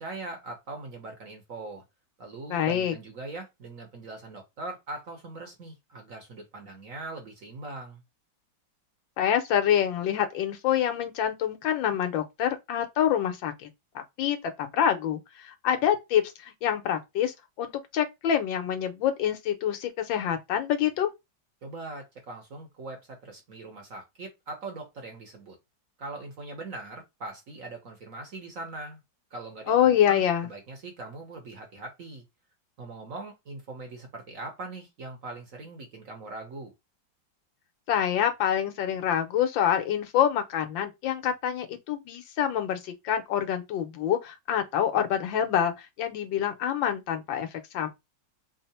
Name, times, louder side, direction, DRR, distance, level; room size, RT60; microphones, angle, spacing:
voice 1, 0.0-1.8 2.2-8.0 21.6-25.6 26.0-29.0 29.3-32.2 32.8-36.7, right 2 dB, 55° right, 1.2 m, -41 dB
voice 2, 2.5-3.0 9.2-13.7 13.9-21.1 29.7-30.5 37.9-47.5 47.7-47.9, left 9 dB, 80° left, 1.5 m, -26 dB
3.7 x 2.0 x 4.1 m
omnidirectional pair, 2.0 m